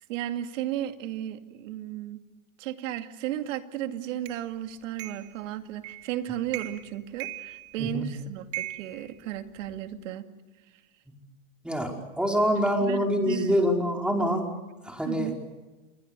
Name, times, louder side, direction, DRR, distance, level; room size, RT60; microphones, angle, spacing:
voice 1, 0.1-2.3 2.6-10.3 12.8-13.8 15.0-15.4, right 12 dB, 65° right, 8 dB, 2.5 m, -34 dB
sound 1, 4.3-4.4 5.0-5.3 5.8-6.1 6.5-6.9 7.2-8.0 8.5-9.8, right 15 dB, 35° right, 2.8 m, -38 dB
voice 2, 11.6-14.4 14.8-15.3, equal, ahead, 2 dB, 5.0 m, -25 dB
28.5 x 22.5 x 6.8 m, 1.2 s
supercardioid pair, 135°, 41 cm